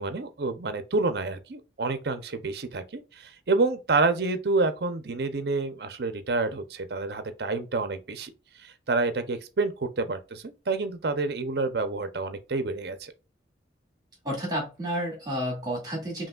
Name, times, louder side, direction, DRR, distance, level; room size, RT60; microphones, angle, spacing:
voice 1, 0.0-8.3 8.9-13.1, right 3 dB, 60° right, 0.6 m, -28 dB
voice 2, 14.2-16.3, equal, 20° right, 2.1 m, -31 dB
5.3 x 2.9 x 2.3 m
head